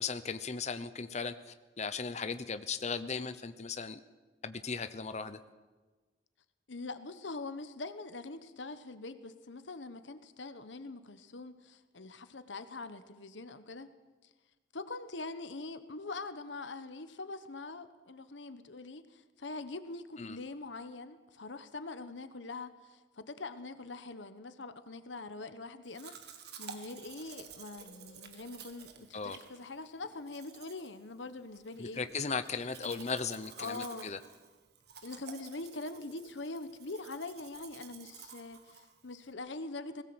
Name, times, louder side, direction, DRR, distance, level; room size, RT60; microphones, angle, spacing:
voice 1, 0.0-4.0 4.4-5.4 20.2-20.4 29.1-29.4 31.8-34.2, left 5 dB, 40° left, 11 dB, 0.8 m, -37 dB
voice 2, 6.7-13.9 14.2-14.3 14.7-32.0 32.8-33.0 33.6-34.1 35.0-40.0, left 3 dB, 85° left, 11 dB, 1.2 m, -43 dB
Domestic sounds home sounds, 25.9-39.3, right 6 dB, 60° right, 1.8 m, -52 dB
20.5 x 16.5 x 8.0 m, 1.3 s
head